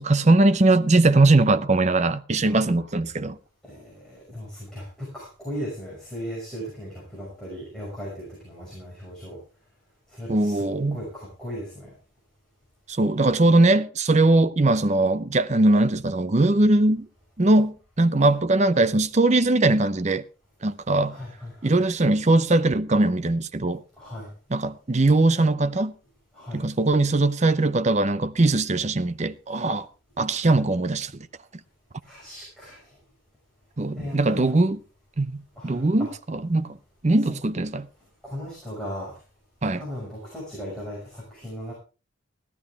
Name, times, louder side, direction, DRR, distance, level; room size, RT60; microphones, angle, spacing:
voice 1, 0.0-3.4 10.3-11.0 12.9-17.1 17.4-20.3 20.6-21.2 21.6-23.8 24.5-25.9 26.5-29.9 30.2-31.3 33.8-34.8 35.2-36.8 37.0-37.9 39.6-39.8, right 2 dB, 30° right, 0.6 m, -21 dB
voice 2, 3.6-9.4 10.1-11.9 21.1-21.7 24.0-24.3 26.3-26.6 32.0-32.9 33.9-34.6 35.5-36.1 38.2-39.1 39.8-41.7, equal, 5° left, 5.9 m, -37 dB
16.0 x 12.5 x 3.6 m
head